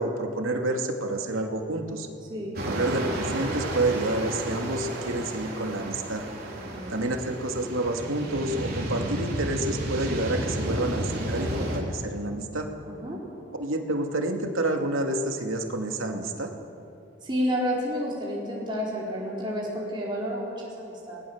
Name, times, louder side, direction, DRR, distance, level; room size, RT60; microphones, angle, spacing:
voice 1, 0.0-2.1 2.7-6.2 6.9-12.7 13.5-16.5, right 2 dB, 85° right, 3 dB, 2.5 m, -29 dB
sound 1, 2.5-11.8, right 1 dB, 50° right, 4.2 m, -32 dB
voice 2, 6.5-7.1 12.8-13.2 17.2-21.2, equal, 25° right, -6 dB, 4.6 m, -31 dB
30.0 x 20.0 x 7.4 m, 2.7 s
head